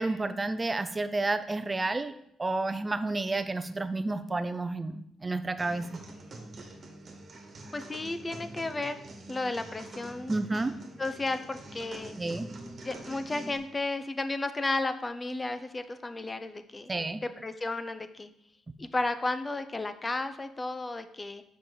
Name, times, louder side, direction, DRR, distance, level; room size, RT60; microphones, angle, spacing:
voice 1, 0.0-2.1 2.4-6.0 10.3-10.7 12.2-12.5 16.9-17.2, right 2 dB, 20° right, 11 dB, 0.6 m, -30 dB
sound 1, 5.6-13.6, right 2 dB, 45° right, 1.6 m, -45 dB
voice 2, 7.7-9.0 9.3-10.4 11.0-12.2 12.8-16.9 17.2-18.3 18.8-21.4, left 2 dB, 20° left, 10 dB, 0.7 m, -33 dB
5.7 x 5.0 x 6.5 m, 0.73 s
cardioid pair, 90°, 0 cm